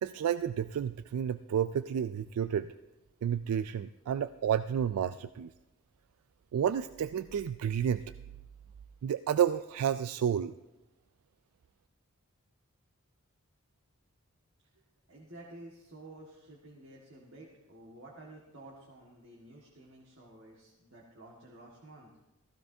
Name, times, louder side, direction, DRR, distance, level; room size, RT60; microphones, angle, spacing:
voice 1, 0.0-2.7 3.2-5.5 6.5-8.0 9.0-10.5, right 8 dB, 90° right, 13 dB, 0.3 m, -30 dB
voice 2, 14.7-22.1, right 1 dB, 60° right, -3 dB, 1.7 m, -52 dB
16.0 x 15.0 x 2.7 m, 1.0 s
head